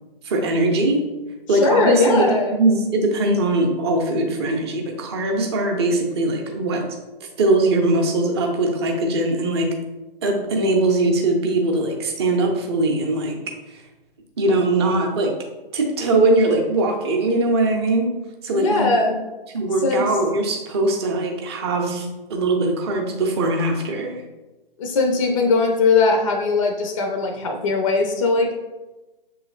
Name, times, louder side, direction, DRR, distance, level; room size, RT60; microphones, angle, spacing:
voice 1, 0.2-1.1 1.5-6.8 7.2-9.8 10.2-13.4 13.7-13.8 14.4-15.3 15.7-18.2 18.4-19.1 19.5-24.2, right 2 dB, 25° right, 2 dB, 0.6 m, -21 dB
voice 2, 1.5-2.6 18.6-19.1 19.8-20.1 24.8-28.5, left 3 dB, 35° left, 2 dB, 0.4 m, -19 dB
6.9 x 3.1 x 2.4 m, 1.1 s
figure-of-eight pair, 140°, 30 cm